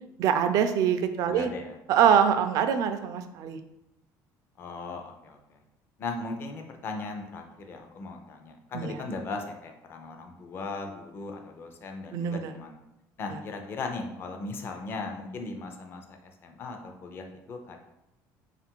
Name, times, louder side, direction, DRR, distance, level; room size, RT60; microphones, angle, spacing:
voice 1, 0.2-1.5 1.9-3.6 8.7-9.0 12.1-12.5 13.3-13.4, right 8 dB, 55° right, 8 dB, 0.4 m, -24 dB
voice 2, 1.3-1.8 4.6-5.6 6.0-12.8 13.2-17.8, left 3 dB, 30° left, 4 dB, 0.5 m, -38 dB
3.7 x 2.5 x 4.4 m, 0.90 s
cardioid pair, 170°, 7 cm